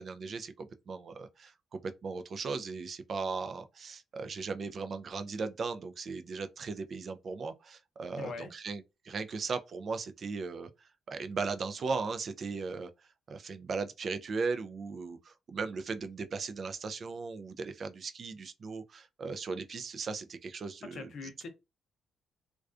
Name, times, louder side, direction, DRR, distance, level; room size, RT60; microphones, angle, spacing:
voice 1, 0.0-10.7 11.1-12.9 13.3-21.1, right 4 dB, 50° right, 0.3 m, -37 dB
voice 2, 8.1-8.5 20.9-21.5, left 4 dB, 65° left, 0.6 m, -42 dB
2.3 x 2.2 x 2.4 m
cardioid pair, 90°, 0 cm